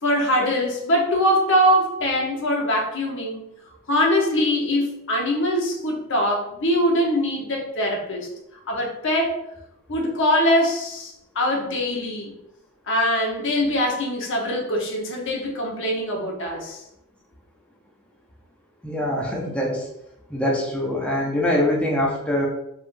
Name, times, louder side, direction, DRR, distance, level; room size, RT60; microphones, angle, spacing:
voice 1, 0.0-3.5 3.9-8.3 8.7-9.4 9.9-12.4 12.9-16.8, equal, 60° left, 0 dB, 1.1 m, -22 dB
voice 2, 18.8-19.9 20.3-22.5, left 1 dB, 5° left, -2 dB, 0.7 m, -23 dB
4.9 x 3.6 x 2.6 m, 0.80 s
head